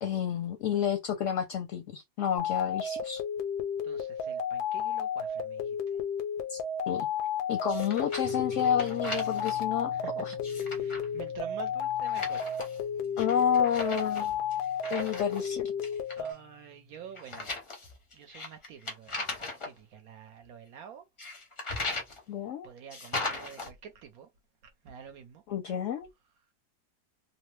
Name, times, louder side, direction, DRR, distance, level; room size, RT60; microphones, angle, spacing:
voice 1, 0.0-3.2 6.5-6.6 6.9-7.1 7.5-10.3 13.2-14.4 14.9-15.7 22.3-22.7 25.5-26.1, left 9 dB, 70° left, 0.8 m, -30 dB
sound 1, 2.4-16.3, left 6 dB, 90° left, 1.2 m, -33 dB
voice 2, 3.8-6.0 9.9-10.1 10.5-12.5 16.2-17.5 18.1-21.1 22.6-24.3 24.6-25.4, right 8 dB, 70° right, 1.0 m, -48 dB
sound 2, 7.7-8.4 8.6-9.6 10.3-11.1 12.1-12.8 13.2-15.5 15.8-16.3 17.2-19.7 21.2-22.2 22.9-23.7, left 2 dB, 40° left, 0.4 m, -38 dB
sound 3, 8.2-17.2, right 1 dB, 55° right, 0.5 m, -50 dB
2.8 x 2.0 x 3.1 m
omnidirectional pair, 1.7 m